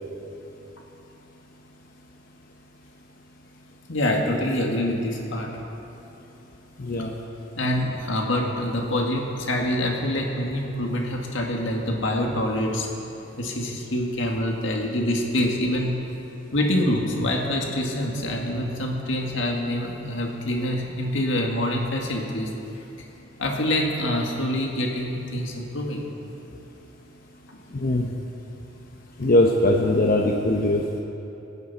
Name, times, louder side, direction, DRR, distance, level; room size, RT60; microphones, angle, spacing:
voice 1, 3.9-5.5 7.6-12.9 13.4-15.9 16.5-22.5 23.4-26.0 26.5-26.6, left 1 dB, 75° left, 0 dB, 1.9 m, -25 dB
voice 2, 6.8-7.1 27.8-28.1 29.2-31.0, left 1 dB, 50° left, 0 dB, 0.8 m, -21 dB
23.0 x 9.3 x 4.1 m, 2.9 s
head